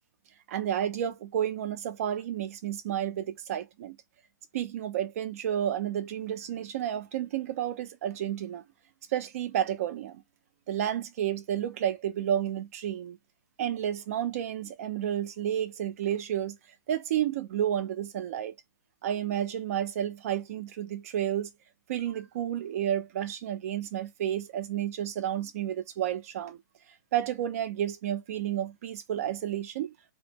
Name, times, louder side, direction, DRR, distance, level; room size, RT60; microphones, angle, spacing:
voice 1, 0.5-4.0 4.5-8.6 9.1-10.2 10.7-13.2 13.6-16.6 16.9-18.6 19.0-21.5 21.9-26.6 27.1-29.9, right 10 dB, 45° right, 0.5 m, -31 dB
2.0 x 2.0 x 3.3 m
hypercardioid pair, 145°, 11 cm